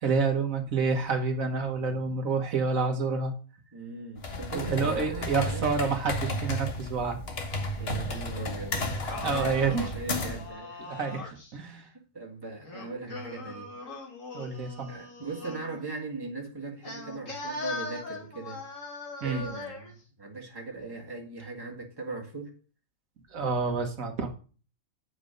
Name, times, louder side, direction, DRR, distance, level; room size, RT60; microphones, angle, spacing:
voice 1, 0.0-3.3 4.5-7.2 9.2-9.9 10.9-11.9 14.3-14.9 19.2-19.4 23.3-24.3, right 4 dB, 75° right, 1.6 m, -28 dB
voice 2, 3.7-5.6 7.8-8.8 9.2-10.8 11.6-13.7 14.5-18.6 19.2-22.5, right 3 dB, 15° right, 1.7 m, -39 dB
sound 1, 4.2-10.5, left 1 dB, 50° left, 1.4 m, -33 dB
Singing, 8.7-11.5 12.6-15.8 16.8-19.9, left 3 dB, 65° left, 2.4 m, -40 dB
8.4 x 5.0 x 5.1 m
omnidirectional pair, 1.4 m